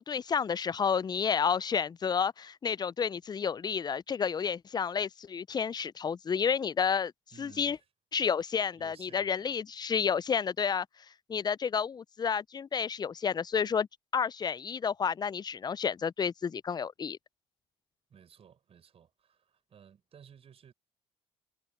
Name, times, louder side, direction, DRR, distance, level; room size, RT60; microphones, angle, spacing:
voice 1, 0.0-7.1 7.4-7.8 8.1-10.9 11.3-13.9 14.1-17.2, left 6 dB, 30° left, 0.6 m, -30 dB
voice 2, 7.3-7.9 8.7-9.6 18.1-20.7, right 8 dB, 45° right, 6.1 m, -57 dB
hypercardioid pair, 55°, 13 cm